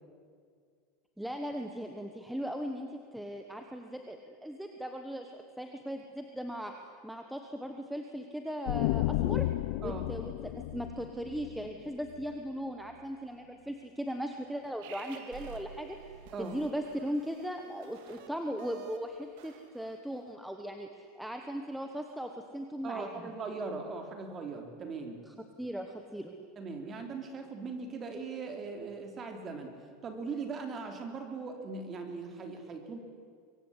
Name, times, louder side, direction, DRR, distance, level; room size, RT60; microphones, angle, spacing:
voice 1, 1.2-6.7 7.0-9.5 9.8-16.0 16.4-23.1 25.3-26.3, equal, ahead, 4 dB, 1.3 m, -38 dB
sound 1, 8.7-12.3, left 16 dB, 60° left, 0.7 m, -32 dB
sound 2, 14.8-20.3, right 8 dB, 55° right, 3.2 m, -51 dB
voice 2, 22.8-25.2 26.6-29.7 30.0-33.0, right 4 dB, 20° right, 5 dB, 3.3 m, -39 dB
24.0 x 23.5 x 9.9 m, 2.1 s
supercardioid pair, 175°, 0 cm